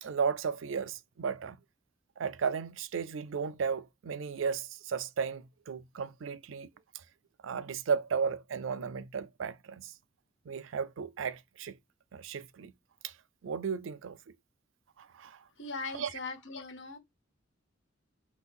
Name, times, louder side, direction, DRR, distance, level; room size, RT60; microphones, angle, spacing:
voice 1, 0.0-1.6 2.2-6.7 7.4-9.9 10.5-11.8 12.1-12.7 13.0-13.1 13.4-14.2 15.0-15.4 15.9-16.1, right 6 dB, 75° right, 0.4 m, -34 dB
voice 2, 15.6-17.0, left 3 dB, 65° left, 1.3 m, -40 dB
6.0 x 2.3 x 3.6 m
head